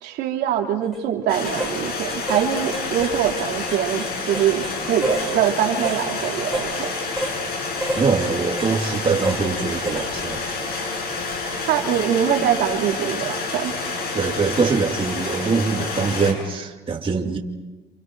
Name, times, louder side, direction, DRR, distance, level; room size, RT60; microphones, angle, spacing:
voice 1, 0.0-6.9 11.7-13.7, right 9 dB, 80° right, 1 dB, 3.0 m, -23 dB
sound 1, 0.8-1.0 1.5-1.7 2.1-2.5 2.7-4.7 5.0-5.4 5.8-6.0 6.5-6.7 7.2-7.4 7.8-8.1 8.6-8.7 9.2-9.4 9.9-10.1 10.5-10.7, right 1 dB, ahead, 6.2 m, -29 dB
sound 2, 1.3-16.3, left 3 dB, 65° left, 7.2 m, -29 dB
voice 2, 8.0-10.4 14.1-17.4, right 5 dB, 30° right, 1 dB, 2.7 m, -23 dB
29.5 x 29.0 x 4.7 m, 1.2 s
cardioid pair, 110°, 17 cm